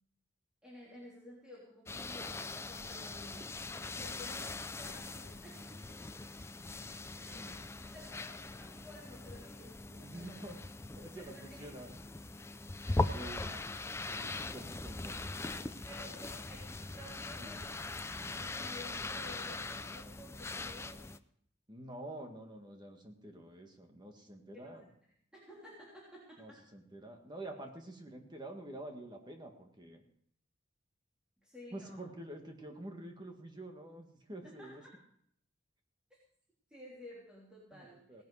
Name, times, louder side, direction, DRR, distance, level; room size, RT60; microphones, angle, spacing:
voice 1, 0.6-3.5 3.8-5.8 7.2-7.6 7.9-10.4 11.1-11.7 12.9-13.6 15.9-18.0 18.3-21.0 24.5-24.7 25.3-26.6 31.4-32.1 34.4-34.9 36.7-38.2, left 1 dB, 5° right, -7 dB, 3.4 m, -53 dB
sound 1, 1.9-21.2, left 2 dB, 15° left, 0.4 m, -41 dB
voice 2, 7.2-7.6 10.0-10.6 10.9-11.9 13.0-13.5 14.0-16.3 17.3-17.6 21.7-24.9 26.4-30.0 31.7-34.8 37.7-38.2, right 1 dB, 25° right, 3 dB, 1.7 m, -48 dB
17.5 x 10.5 x 4.9 m, 0.68 s
head